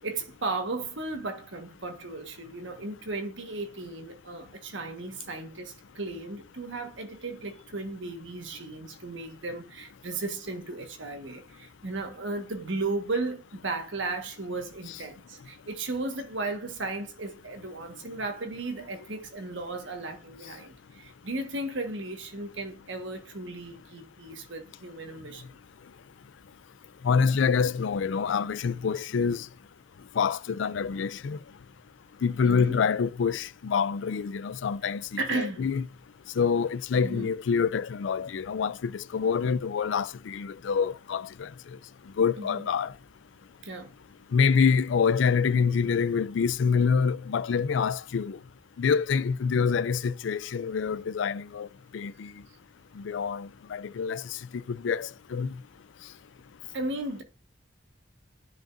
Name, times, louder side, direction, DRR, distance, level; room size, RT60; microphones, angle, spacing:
voice 1, 0.0-25.4 32.4-32.8 35.2-35.7 37.0-37.3 42.4-42.7 43.6-43.9 56.7-57.2, right 2 dB, 80° right, 1.4 m, -35 dB
voice 2, 27.0-29.4 30.2-31.4 32.2-35.8 36.4-41.5 42.2-42.9 44.3-48.4 48.8-51.7 51.9-52.3 53.0-54.2 54.7-55.5, left 6 dB, 85° left, 0.4 m, -26 dB
10.0 x 5.2 x 2.5 m
head